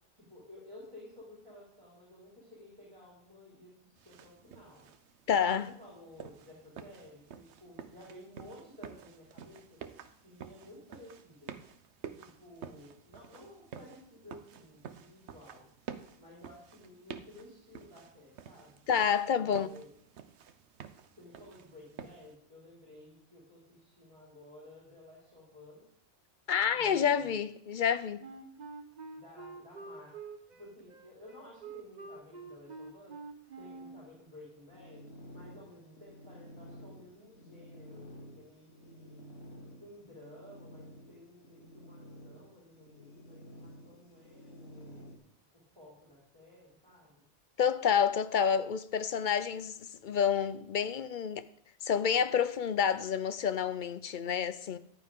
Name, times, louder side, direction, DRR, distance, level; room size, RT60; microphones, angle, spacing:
voice 1, 0.1-4.9 5.4-9.8 10.2-11.6 12.1-15.7 16.2-18.8 19.3-19.9 21.2-25.8 26.7-27.4 29.2-30.1 30.6-33.2 33.6-39.3 39.8-45.2 45.5-47.2, left 1 dB, 25° right, 4.6 m, -54 dB
sound 1, 4.0-22.3, right 7 dB, 80° right, 1.1 m, -50 dB
voice 2, 5.3-5.7 18.9-19.7 26.5-28.2 47.6-51.4 51.8-54.8, left 7 dB, 55° left, 0.7 m, -29 dB
Wind instrument woodwind instrument, 28.2-34.1, right 3 dB, 40° right, 1.1 m, -47 dB
sound 2, 34.7-45.2, equal, 70° left, 2.4 m, -52 dB
14.0 x 11.0 x 3.7 m
omnidirectional pair, 1.1 m